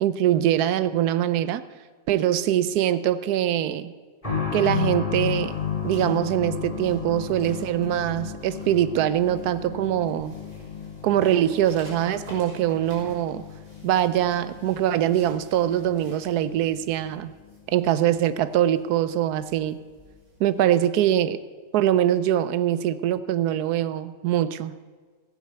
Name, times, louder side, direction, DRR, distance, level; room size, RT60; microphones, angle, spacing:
voice 1, 0.0-1.6 2.1-3.9 4.5-5.5 5.8-10.3 11.0-13.5 13.8-17.3 17.7-19.8 20.4-21.4 21.7-24.8, right 11 dB, 90° right, 14 dB, 1.2 m, -23 dB
sound 1, 4.2-18.7 18.9-19.0 20.0-20.1, left 7 dB, 20° left, 4.0 m, -34 dB
sound 2, 5.3-20.9, equal, 70° right, 5.7 m, -50 dB
15.5 x 8.8 x 8.0 m, 1.5 s
omnidirectional pair, 1.6 m